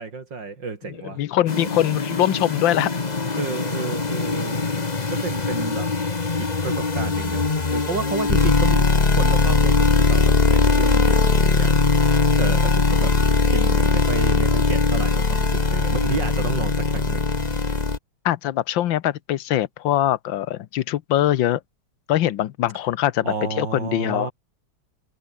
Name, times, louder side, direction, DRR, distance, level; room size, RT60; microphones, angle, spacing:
voice 1, 0.0-1.2 3.4-4.7 5.1-5.9 6.4-13.1 13.5-17.3 23.2-24.3, right 4 dB, 70° right, 3.7 m, -31 dB
voice 2, 1.2-3.0 18.2-21.6 22.1-24.3, left 13 dB, 85° left, 1.6 m, -22 dB
sound 1, 1.5-18.0, left 4 dB, 25° left, 1.4 m, -20 dB
omnidirectional pair, 2.0 m